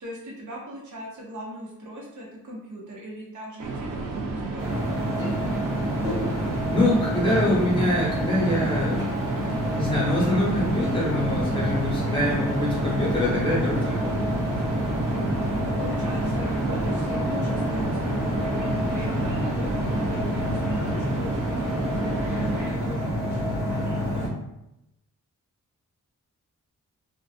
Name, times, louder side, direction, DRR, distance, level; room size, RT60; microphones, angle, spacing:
voice 1, 0.0-5.0 15.1-15.4 15.6-24.3, equal, 65° right, -3 dB, 0.8 m, -40 dB
sound 1, 3.6-22.7, right 3 dB, 85° right, 0.5 m, -32 dB
sound 2, 4.6-24.3, equal, 10° right, 1.0 m, -28 dB
voice 2, 6.7-9.0 9.7-14.3, left 1 dB, 15° left, -6 dB, 0.9 m, -25 dB
2.4 x 2.2 x 2.3 m, 0.86 s
wide cardioid pair, 125°, 32 cm